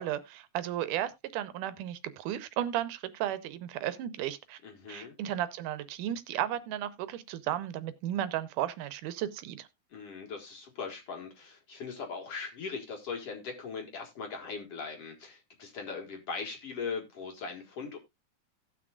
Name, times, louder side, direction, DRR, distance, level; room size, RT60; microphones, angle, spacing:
voice 1, 0.0-4.6 4.9-9.7, right 12 dB, 80° right, 14 dB, 2.2 m, -34 dB
voice 2, 4.6-5.1 9.9-18.0, left 5 dB, 55° left, 3 dB, 2.3 m, -40 dB
17.5 x 6.1 x 2.3 m, 0.20 s
omnidirectional pair, 3.7 m